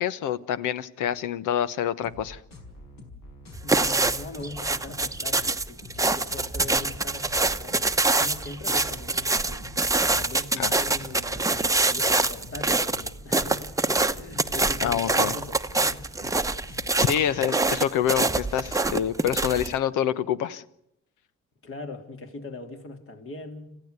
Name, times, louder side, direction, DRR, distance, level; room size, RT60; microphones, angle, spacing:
voice 1, 0.0-2.4 10.6-10.7 14.8-15.4 17.0-20.6, left 10 dB, 90° left, 1.1 m, -26 dB
sound 1, 2.0-17.0, left 2 dB, 65° left, 5.4 m, -46 dB
sound 2, 3.5-19.7, right 3 dB, 10° right, 0.9 m, -25 dB
voice 2, 3.6-9.7 10.1-16.0 16.5-16.7 21.6-23.8, left 3 dB, 45° left, 3.5 m, -41 dB
27.0 x 15.0 x 8.1 m
cardioid pair, 90°, 30 cm